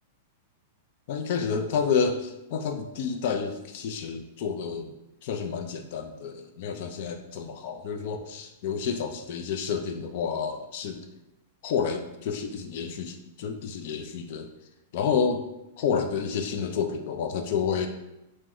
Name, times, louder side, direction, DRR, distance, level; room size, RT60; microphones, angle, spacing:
voice 1, 1.1-4.9 5.2-11.0 11.6-14.5 14.9-15.4 15.8-17.9, left 6 dB, 55° left, 6 dB, 0.4 m, -29 dB
2.9 x 2.1 x 3.6 m, 0.92 s
hypercardioid pair, 135°, 0 cm